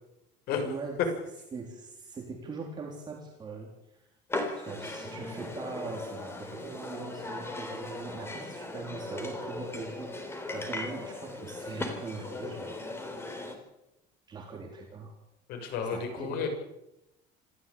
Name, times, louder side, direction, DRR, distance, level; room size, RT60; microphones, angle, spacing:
voice 1, 0.6-1.0 1.5-4.1 4.6-12.8 14.3-15.2 15.8-16.5, right 4 dB, 25° right, 0 dB, 3.9 m, -41 dB
sound 1, 4.3-13.5, left 2 dB, 15° left, 3.9 m, -38 dB
voice 2, 15.5-16.5, left 6 dB, 55° left, 5 dB, 7.0 m, -32 dB
27.5 x 15.0 x 9.0 m, 0.89 s
cardioid pair, 170°, 18 cm